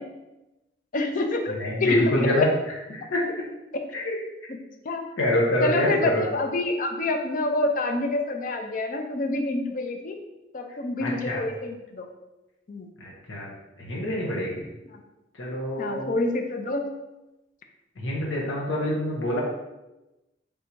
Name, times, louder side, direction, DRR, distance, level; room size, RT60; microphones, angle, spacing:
voice 1, 0.9-2.3 4.5-4.6 4.8-5.0 5.6-10.2 10.5-12.1 12.7-12.9 15.8-16.8, left 2 dB, 45° left, 4 dB, 0.5 m, -27 dB
voice 2, 1.6-3.3 3.9-4.2 5.2-6.2 10.7-11.4 13.0-14.7 15.3-16.1 18.0-19.4, left 1 dB, 85° left, -3 dB, 0.8 m, -26 dB
3.5 x 2.7 x 4.3 m, 1.0 s
head